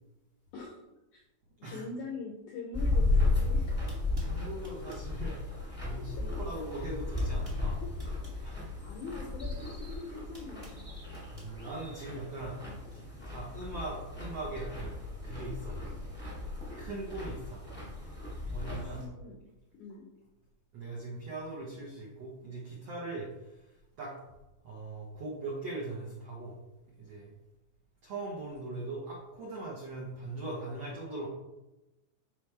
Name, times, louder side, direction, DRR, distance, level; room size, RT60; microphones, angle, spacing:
voice 1, 1.7-3.7 8.3-8.5 8.8-10.9 18.7-19.4 19.7-20.1, left 4 dB, 85° left, 0 dB, 1.7 m, -43 dB
sound 1, 2.7-19.0, left 2 dB, 5° left, 0.7 m, -34 dB
sound 2, 3.4-3.5 3.9-5.1 6.3-6.6 6.9-8.4 9.6-11.5, right 2 dB, 45° right, 0.4 m, -55 dB
voice 2, 4.2-7.8 8.4-8.6 11.3-12.6 12.9-15.0 15.2-15.8 16.8-17.6 18.5-19.0 20.7-23.6 24.0-24.1 24.6-26.5 27.0-27.3 28.0-31.3, right 2 dB, 75° right, -4 dB, 1.4 m, -40 dB
11.5 x 5.1 x 3.4 m, 1.0 s
omnidirectional pair, 4.8 m